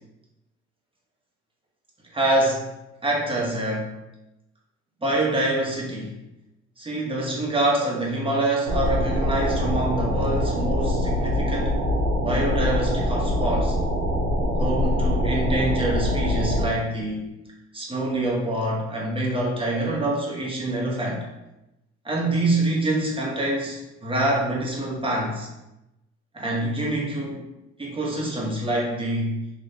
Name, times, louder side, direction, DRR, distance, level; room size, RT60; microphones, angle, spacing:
voice 1, 2.1-2.6 3.0-3.9 5.0-6.1 6.8-11.7 12.2-13.7 14.6-17.3 17.7-21.2 22.0-25.5 26.3-27.4 27.8-29.3, right 1 dB, 20° right, -3 dB, 1.1 m, -25 dB
sound 1, 8.7-16.7, left 1 dB, 90° right, 0.8 m, -24 dB
3.2 x 3.0 x 2.8 m, 0.92 s
cardioid pair, 80°, 29 cm